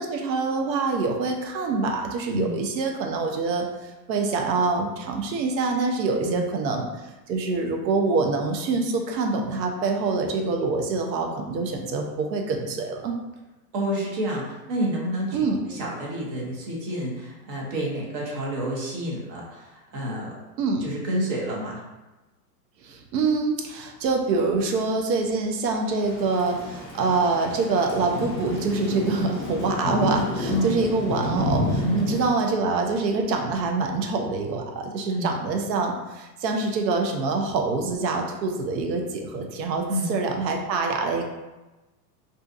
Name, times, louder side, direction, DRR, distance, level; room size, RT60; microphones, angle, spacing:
voice 1, 0.0-3.7 4.1-6.9 7.3-13.2 15.3-15.6 20.6-20.8 22.8-41.2, right 3 dB, 90° right, 3 dB, 0.6 m, -25 dB
voice 2, 13.7-20.3 20.8-21.8 30.5-30.8 31.8-32.0 35.1-35.3 39.9-40.1, equal, 35° right, -3 dB, 0.7 m, -29 dB
Thunder / Rain, 26.0-32.3, left 2 dB, 30° left, 0.4 m, -30 dB
2.5 x 2.3 x 2.5 m, 1.1 s
supercardioid pair, 150°, 49 cm